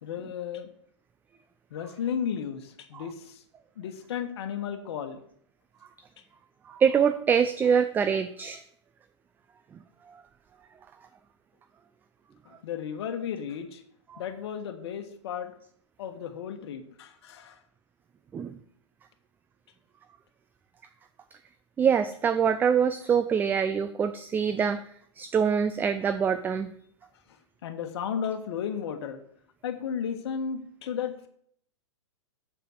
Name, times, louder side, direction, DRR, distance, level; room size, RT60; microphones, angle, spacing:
voice 1, 0.0-0.7 1.7-3.4 3.8-5.2 12.4-13.8 14.2-15.5 16.0-17.6 27.3-29.2 29.6-31.3, left 8 dB, 60° left, 7 dB, 1.4 m, -34 dB
voice 2, 6.7-8.6 14.1-14.2 18.3-18.5 21.8-24.8 25.2-26.7, right 7 dB, 10° right, 11 dB, 0.4 m, -24 dB
7.0 x 6.8 x 6.5 m, 0.67 s
hypercardioid pair, 115°, 15 cm